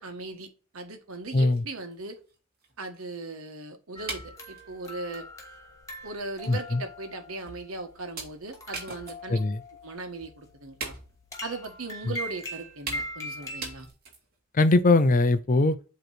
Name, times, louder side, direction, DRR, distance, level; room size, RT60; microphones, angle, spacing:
voice 1, 0.0-2.2 2.8-5.3 6.0-9.4 9.8-11.0 11.4-13.9, right 3 dB, 80° right, 1.3 m, -38 dB
sound 1, 1.0-1.1 1.4-3.3 4.1-4.7 5.4-5.5 5.9-6.1 6.7-6.8 7.5-7.7 8.2-9.5 9.8-9.9 10.2-10.4 10.8-11.3 12.3-12.4 12.9-13.3 13.6-14.4, right 3 dB, 45° right, 2.2 m, -40 dB
sound 2, 4.0-13.9, left 1 dB, 15° left, 1.5 m, -42 dB
voice 2, 6.5-6.8 9.3-9.6 14.5-15.8, left 2 dB, 40° left, 0.5 m, -21 dB
7.9 x 3.1 x 4.2 m
head